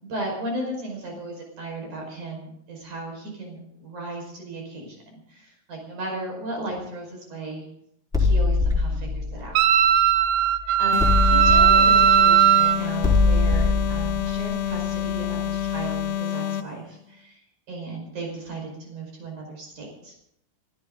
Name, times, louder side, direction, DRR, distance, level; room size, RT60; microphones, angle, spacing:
voice 1, 0.1-7.7 8.2-9.6 10.8-17.4 17.7-20.1, right 2 dB, 50° right, 1 dB, 6.7 m, -35 dB
sound 1, 8.1-10.5 11.0-15.7, left 3 dB, ahead, 3.4 m, -23 dB
Wind instrument woodwind instrument, 9.6-12.8, right 9 dB, 85° right, 2.7 m, -17 dB
sound 2, 10.9-16.8, left 11 dB, 75° left, 2.6 m, -28 dB
24.5 x 14.5 x 3.9 m, 0.75 s
omnidirectional pair, 4.5 m